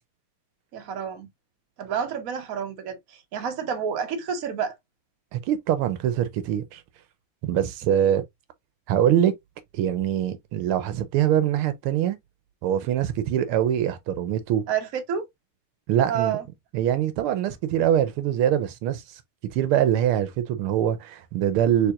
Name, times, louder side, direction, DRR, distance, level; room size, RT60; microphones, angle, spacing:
voice 1, 0.7-1.3 1.8-4.7 14.7-15.3 16.1-16.4, right 7 dB, 50° right, 1.2 m, -29 dB
voice 2, 5.3-6.8 7.4-8.2 8.9-9.3 9.7-12.2 12.6-14.6 15.9-16.4 16.7-19.0 19.5-21.9, right 10 dB, 85° right, 1.5 m, -23 dB
5.7 x 3.5 x 2.3 m
omnidirectional pair, 2.4 m